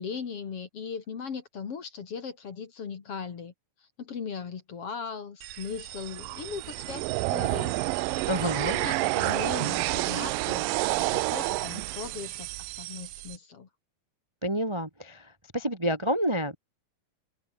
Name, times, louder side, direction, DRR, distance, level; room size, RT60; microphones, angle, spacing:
voice 1, 0.0-3.5 4.0-7.8 8.4-10.6 11.0-13.7, left 6 dB, 45° left, 2.7 m, -38 dB
sound 1, 5.4-13.4, right 20 dB, 80° right, 2.2 m, -30 dB
voice 2, 8.3-8.8 14.4-15.3 15.5-16.6, equal, 10° right, 1.4 m, -28 dB
omnidirectional pair, 4.2 m